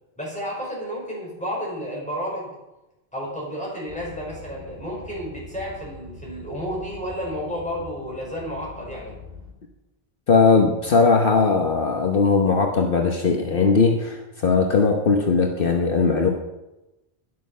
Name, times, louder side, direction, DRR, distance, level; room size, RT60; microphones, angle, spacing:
voice 1, 0.2-2.5 3.1-9.2, equal, 5° left, -5 dB, 5.2 m, -31 dB
sound 1, 3.9-9.5, left 1 dB, 70° right, 4.1 m, -43 dB
voice 2, 10.3-16.3, left 4 dB, 60° left, 1 dB, 1.3 m, -19 dB
12.0 x 10.5 x 5.6 m, 1.0 s
omnidirectional pair, 1.0 m